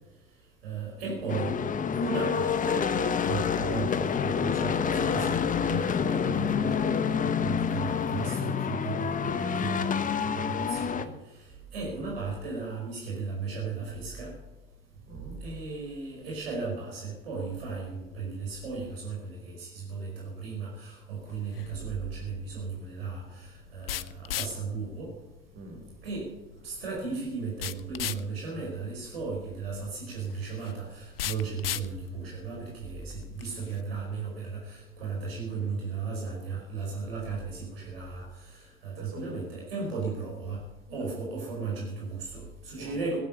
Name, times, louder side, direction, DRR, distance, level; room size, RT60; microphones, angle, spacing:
voice 1, 0.6-1.5 2.0-2.9 3.2-6.8 7.2-14.3 15.4-25.1 26.0-26.3 26.6-40.6 40.9-43.2, right 4 dB, 75° right, -2 dB, 5.1 m, -36 dB
sound 1, 1.3-11.1, left 7 dB, 25° left, 1.2 m, -28 dB
voice 2, 6.7-7.2 15.1-15.4 25.5-25.9 39.0-39.4 39.8-39.9 40.9-41.2 42.8-43.2, right 2 dB, 45° right, 1 dB, 6.1 m, -44 dB
sound 2, 21.2-33.8, left 12 dB, 75° left, 0.7 m, -40 dB
16.5 x 11.5 x 6.9 m, 1.1 s
figure-of-eight pair, 75°, 29 cm